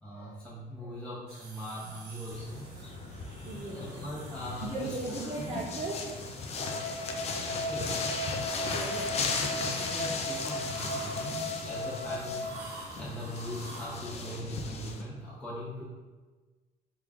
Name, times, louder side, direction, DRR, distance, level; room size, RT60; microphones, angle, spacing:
voice 1, 0.0-2.7 3.6-4.8 5.2-5.3 7.3-8.0 9.6-12.5 13.0-15.8, equal, 5° left, -8 dB, 0.9 m, -40 dB
sound 1, 1.3-14.3, right 3 dB, 75° right, 0.7 m, -50 dB
sound 2, 2.3-15.0, left 4 dB, 40° left, 0.4 m, -37 dB
voice 2, 3.4-4.0 4.6-6.0 8.7-9.3, right 2 dB, 35° right, -2 dB, 0.5 m, -37 dB
sound 3, 6.6-12.6, left 1 dB, 70° left, 0.8 m, -37 dB
3.1 x 2.5 x 3.4 m, 1.3 s
cardioid pair, 110°, 17 cm